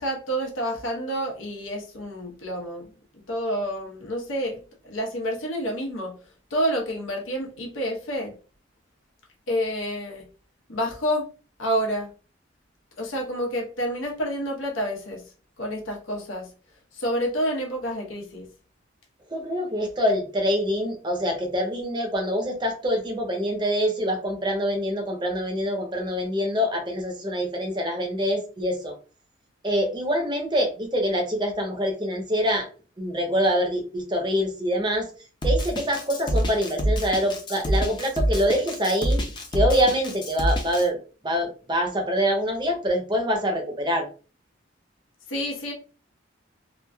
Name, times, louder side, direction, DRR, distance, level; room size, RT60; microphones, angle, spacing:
voice 1, 0.0-2.9 3.3-6.1 6.5-8.3 9.5-10.2 10.7-11.3 11.6-12.1 13.0-15.2 15.6-16.5 16.9-18.5 45.3-45.7, equal, 85° left, 0 dB, 0.9 m, -28 dB
voice 2, 19.3-29.0 29.6-32.7 33.0-35.1 35.4-39.2 39.5-41.0 41.2-44.1, equal, 25° right, 3 dB, 0.6 m, -25 dB
Drum kit, 35.4-40.8, right 1 dB, 25° left, 0.5 m, -25 dB
3.0 x 2.5 x 2.3 m, 0.36 s
head